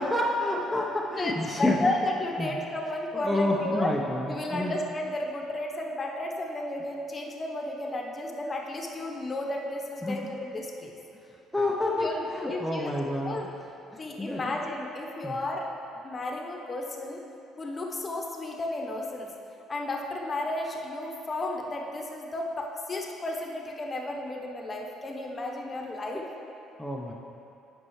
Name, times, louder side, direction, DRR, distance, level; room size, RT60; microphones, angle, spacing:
voice 1, 0.0-1.9 2.4-2.5 3.2-4.7 10.0-10.2 11.5-13.4 14.2-14.5 15.2-15.4 26.8-27.1, left 1 dB, 5° left, -2 dB, 0.6 m, -28 dB
voice 2, 1.2-3.9 4.3-10.9 11.8-12.9 13.2-13.5 14.0-15.7 15.9-17.2 17.6-19.3 19.7-26.3, left 1 dB, 30° left, 0 dB, 0.9 m, -33 dB
9.6 x 5.3 x 3.1 m, 2.7 s
supercardioid pair, 75°, 0 cm